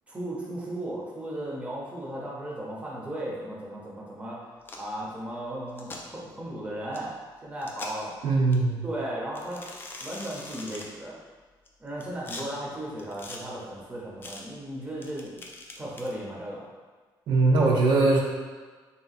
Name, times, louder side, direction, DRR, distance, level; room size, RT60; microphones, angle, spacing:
voice 1, 0.1-4.4 4.7-7.1 7.4-8.3 8.8-9.6 10.0-11.1 11.8-15.3 15.8-16.6, right 1 dB, 15° right, -5 dB, 0.7 m, -36 dB
sound 1, 4.6-4.9 5.7-6.0 6.9-7.0 7.6-8.1 8.5-8.6 9.3-10.9 11.6-12.4 13.0-13.4 14.2-14.4 15.0-16.1, left 2 dB, 25° left, 0.5 m, -41 dB
voice 2, 8.2-8.8 17.3-18.2, right 3 dB, 70° right, -2 dB, 0.7 m, -21 dB
3.4 x 2.8 x 4.1 m, 1.4 s
cardioid pair, 160°, 9 cm